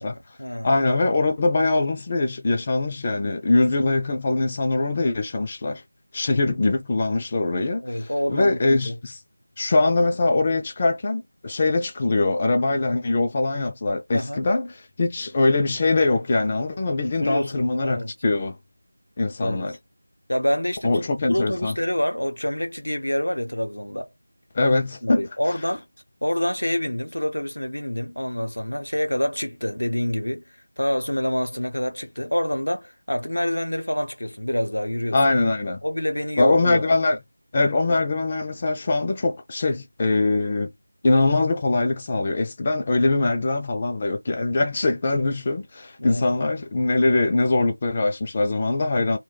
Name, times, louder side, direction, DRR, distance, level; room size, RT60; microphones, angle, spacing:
voice 1, 0.0-0.7 7.8-9.0 14.1-14.4 17.2-18.1 19.4-19.7 20.3-24.1 25.0-25.8 26.2-35.2 35.8-36.9 37.9-38.0 46.0-46.3, left 1 dB, 80° left, 0.7 m, -27 dB
voice 2, 0.6-5.8 6.1-9.2 9.6-18.6 19.2-19.8 20.8-21.7 24.5-25.3 35.1-35.8 36.4-37.2 37.5-40.7 41.0-49.2, left 2 dB, 25° left, 0.3 m, -22 dB
2.2 x 2.1 x 3.8 m
figure-of-eight pair, 170°, 0 cm